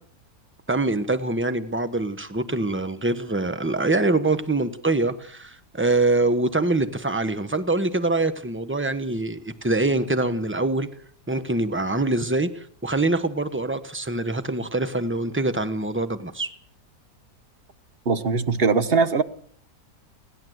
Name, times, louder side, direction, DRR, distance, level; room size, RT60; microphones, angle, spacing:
voice 1, 0.7-10.9 11.3-16.5, right 2 dB, 10° right, 0.9 m, -24 dB
voice 2, 18.0-19.2, right 4 dB, 40° right, 1.2 m, -21 dB
29.5 x 11.5 x 8.0 m
omnidirectional pair, 1.8 m